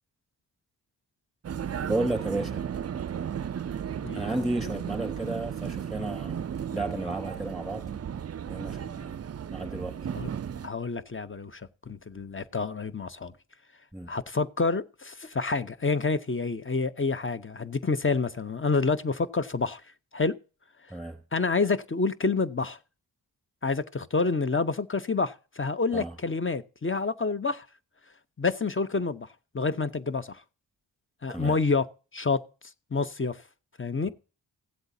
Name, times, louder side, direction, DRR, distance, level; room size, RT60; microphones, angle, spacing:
Vehicle, 1.4-10.7, right 8 dB, 35° right, 0.4 m, -35 dB
voice 1, 1.9-2.6 4.1-6.4 6.7-7.8 8.4-9.2 9.5-10.0 13.9-14.1 20.9-21.2 25.9-26.2 31.3-31.6, right 2 dB, ahead, 3.7 m, -32 dB
voice 2, 10.6-11.6 11.9-13.3 14.1-19.8 20.1-20.4 21.3-22.8 23.6-27.6 28.4-29.3 29.5-30.4 31.2-31.9 32.1-32.4 32.9-33.4 33.8-34.1, left 4 dB, 30° left, 0.7 m, -28 dB
16.0 x 7.9 x 2.7 m
cardioid pair, 40°, 44 cm